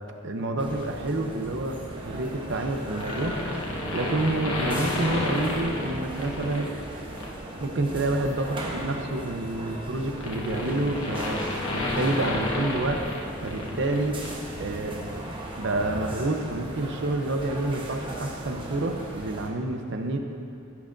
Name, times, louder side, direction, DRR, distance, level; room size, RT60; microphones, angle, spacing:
voice 1, 0.2-6.7 7.6-11.4 11.7-14.2 14.6-15.0 15.6-20.2, right 2 dB, 60° right, 4 dB, 0.7 m, -29 dB
sound 1, 0.6-19.5, right 1 dB, 25° right, 0.9 m, -37 dB
sound 2, 3.0-6.7 7.2-7.4 8.6-14.0 14.2-14.3, left 2 dB, 75° left, 1.1 m, -31 dB
17.5 x 6.1 x 2.6 m, 2.5 s
head